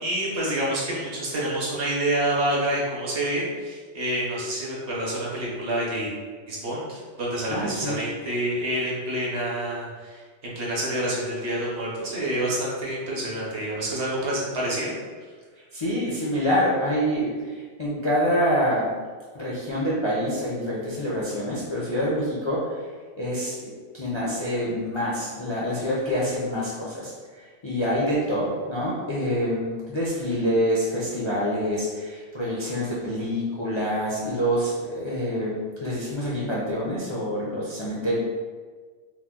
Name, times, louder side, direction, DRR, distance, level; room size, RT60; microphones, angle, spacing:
voice 1, 0.0-6.1 6.5-14.9, right 1 dB, 70° right, -5 dB, 1.1 m, -28 dB
voice 2, 7.5-8.0 15.7-18.9 19.3-22.9 23.2-35.5 35.8-38.2, equal, 45° left, -8 dB, 0.3 m, -26 dB
2.9 x 2.1 x 3.6 m, 1.5 s
omnidirectional pair, 1.2 m